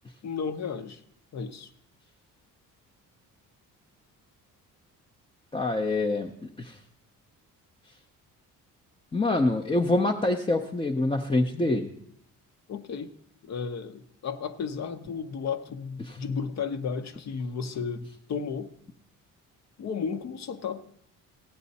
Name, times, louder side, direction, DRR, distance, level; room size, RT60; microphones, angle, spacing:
voice 1, 0.2-1.0 1.3-1.7 12.7-13.1 13.4-18.0 18.3-18.7 19.8-20.9, left 6 dB, 55° left, 9 dB, 0.9 m, -33 dB
voice 2, 5.5-6.7 9.1-11.9 16.0-16.2, left 2 dB, 15° left, 2 dB, 0.6 m, -26 dB
15.5 x 9.7 x 4.1 m, 0.69 s
cardioid pair, 130°, 33 cm